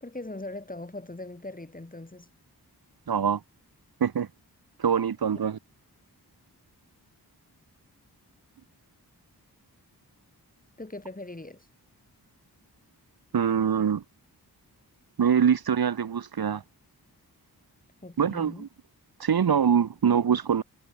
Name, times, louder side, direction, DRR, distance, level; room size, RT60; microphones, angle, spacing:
voice 1, 0.0-2.3 5.3-5.4 10.8-11.7 18.0-18.7, left 2 dB, 20° left, 2.9 m, -40 dB
voice 2, 3.1-3.4 4.0-4.3 4.8-5.6 13.3-14.0 15.2-16.6 18.2-18.7 19.2-20.6, right 7 dB, 70° right, 1.0 m, -24 dB
wide cardioid pair, 65°, 38 cm